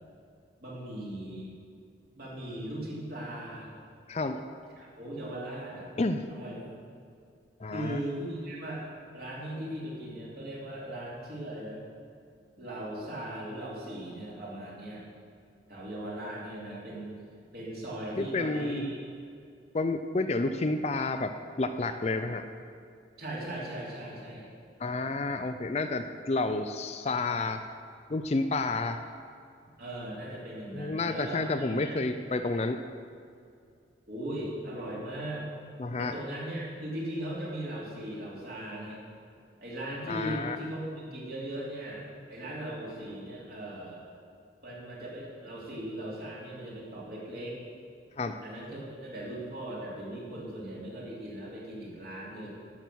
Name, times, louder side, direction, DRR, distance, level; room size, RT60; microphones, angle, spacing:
voice 1, 0.6-1.5 2.2-3.7 4.8-5.9 6.3-6.7 7.7-8.8 9.1-11.8 12.5-15.1 15.7-17.3 17.5-19.0 23.2-24.5 29.8-32.0 34.1-35.5 36.0-39.0 39.6-44.0 44.6-47.6 48.4-52.5, right 1 dB, 50° right, -5 dB, 2.9 m, -38 dB
voice 2, 4.1-4.4 6.0-6.3 7.6-8.0 18.2-18.9 19.7-22.5 24.8-27.6 28.1-29.0 30.7-32.8 35.8-36.1 40.1-40.6 48.2-48.4, left 3 dB, 35° left, 8 dB, 0.4 m, -30 dB
13.5 x 6.0 x 6.2 m, 2.3 s
head